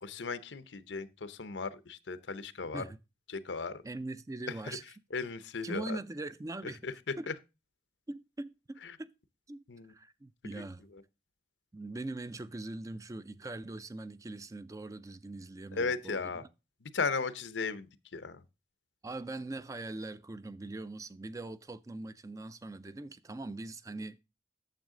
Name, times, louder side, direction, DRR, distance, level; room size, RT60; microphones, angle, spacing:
voice 1, 0.0-2.8 3.3-3.8 4.6-4.8 5.1-6.0 6.6-7.3 8.8-9.0 9.7-9.9 10.5-10.6 10.9-11.0 15.7-16.4 16.8-18.4, left 4 dB, 90° left, 0.8 m, -36 dB
voice 2, 3.8-4.8 5.6-6.8 7.2-7.3 8.1-9.1 9.5-9.6 9.9-10.8 11.7-16.3 19.0-24.2, right 2 dB, 20° right, 0.4 m, -41 dB
9.2 x 7.1 x 3.7 m
head